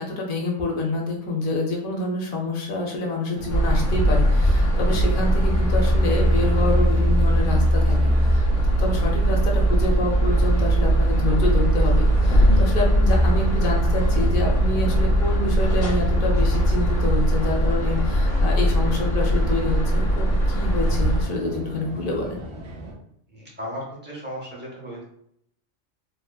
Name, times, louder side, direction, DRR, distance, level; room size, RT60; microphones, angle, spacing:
voice 1, 0.0-8.5 8.8-22.4, left 2 dB, 60° left, 0 dB, 0.6 m, -27 dB
sound 1, 3.3-22.9, equal, 65° right, 0.8 m, -36 dB
sound 2, 3.5-21.3, right 1 dB, 85° left, 1.1 m, -20 dB
voice 2, 23.3-25.0, equal, 15° right, -4 dB, 0.4 m, -35 dB
2.9 x 2.0 x 2.2 m, 0.72 s
omnidirectional pair, 1.2 m